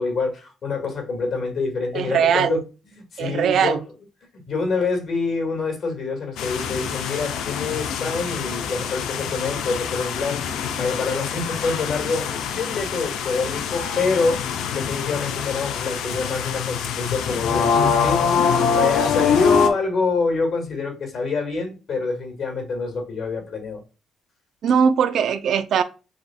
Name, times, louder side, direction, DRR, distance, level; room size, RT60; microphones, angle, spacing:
voice 1, 0.0-2.6 2.9-3.8 4.5-14.4 14.7-23.8, left 4 dB, 60° left, 2.1 m, -26 dB
voice 2, 1.9-2.6 3.2-3.8 24.6-25.8, right 7 dB, 70° right, 0.5 m, -20 dB
sound 1, 6.4-19.7, left 6 dB, 85° left, 0.6 m, -24 dB
6.3 x 2.7 x 2.3 m
cardioid pair, 90°, 0 cm